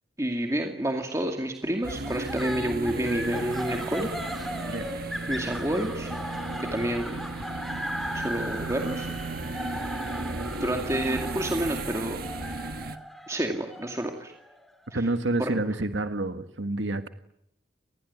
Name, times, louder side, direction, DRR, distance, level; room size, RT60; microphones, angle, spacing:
voice 1, 0.2-4.1 4.7-5.0 5.3-6.1 6.6-7.2 8.1-9.1 10.6-12.2 13.3-14.3 14.9-15.0 15.4-15.6, right 1 dB, 15° right, 3 dB, 2.4 m, -29 dB
sound 1, 1.8-15.0, equal, ahead, 3.3 m, -38 dB
sound 2, 1.8-13.0, right 2 dB, 55° right, 1.5 m, -35 dB
voice 2, 14.9-17.1, right 2 dB, 90° right, 8 dB, 1.6 m, -28 dB
27.0 x 20.0 x 9.7 m, 0.78 s
head